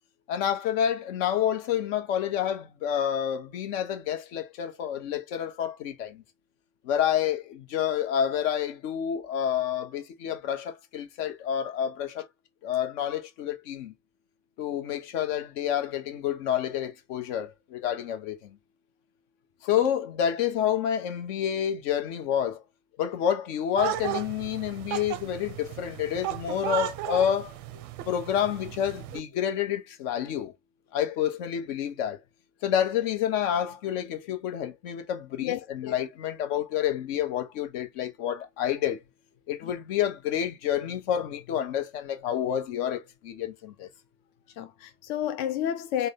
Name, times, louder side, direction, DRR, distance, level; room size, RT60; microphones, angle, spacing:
voice 1, 0.3-6.2 6.8-12.2 12.6-13.9 14.6-18.5 19.6-22.6 23.0-27.5 28.1-30.5 30.9-32.2 32.6-39.0 39.5-43.9, left 9 dB, 50° left, 1.0 m, -29 dB
sound 1, 23.8-29.2, right 13 dB, 40° right, 0.5 m, -35 dB
voice 2, 35.4-35.9 39.6-39.7 44.6-46.1, left 10 dB, 35° left, 0.4 m, -31 dB
3.7 x 2.2 x 3.5 m
figure-of-eight pair, 70°, 49 cm